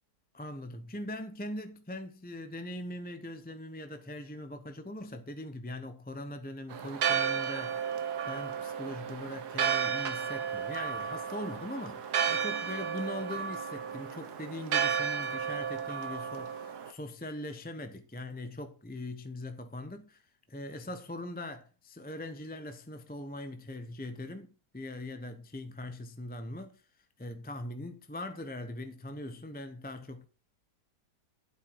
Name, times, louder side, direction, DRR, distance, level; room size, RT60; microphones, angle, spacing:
voice 1, 0.3-20.2 20.5-26.8 27.2-30.3, left 1 dB, 10° left, 0.6 m, -41 dB
Church bell, 6.7-16.9, right 7 dB, 70° right, 1.7 m, -33 dB
12.0 x 8.3 x 4.7 m
omnidirectional pair, 1.8 m